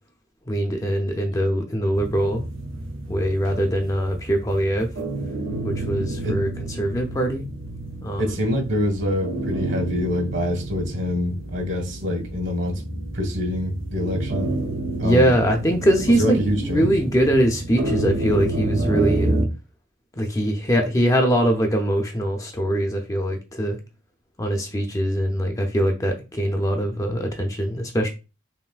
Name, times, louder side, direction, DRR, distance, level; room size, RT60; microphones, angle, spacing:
voice 1, 0.5-2.4 3.1-4.9 5.6-6.5 6.8-7.4 8.0-8.3 15.0-19.4 20.2-23.8 24.4-28.1, right 1 dB, 15° left, 0.5 m, -22 dB
sound 1, 1.9-19.5, right 2 dB, 80° right, 0.9 m, -29 dB
voice 2, 8.2-12.8 13.1-14.5 15.0-15.3 16.2-16.9, left 1 dB, 60° right, 1.4 m, -25 dB
5.5 x 2.6 x 2.4 m
head